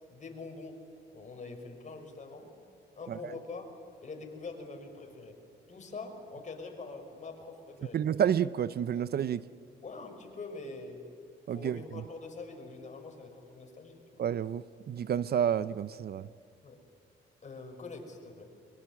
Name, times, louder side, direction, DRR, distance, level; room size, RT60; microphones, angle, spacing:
voice 1, 0.1-0.8 1.1-2.5 3.0-3.7 4.0-5.4 5.7-8.0 9.8-11.0 11.5-14.0 16.6-16.8 17.4-18.4, left 3 dB, 35° left, 3 dB, 5.8 m, -44 dB
voice 2, 7.9-9.4 11.5-11.8 14.2-16.3, right 9 dB, 50° right, 17 dB, 0.6 m, -30 dB
23.5 x 23.0 x 9.9 m, 2.6 s
cardioid pair, 90°, 20 cm